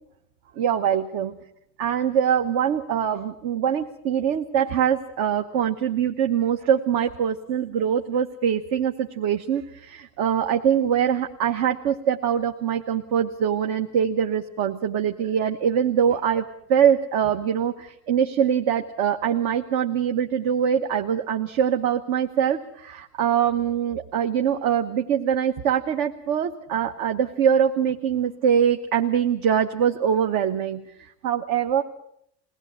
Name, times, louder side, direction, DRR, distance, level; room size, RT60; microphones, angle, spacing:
voice 1, 0.6-1.3 1.8-31.8, right 8 dB, 60° right, 5 dB, 1.3 m, -23 dB
22.0 x 18.0 x 8.2 m, 0.74 s
cardioid pair, 150°, 39 cm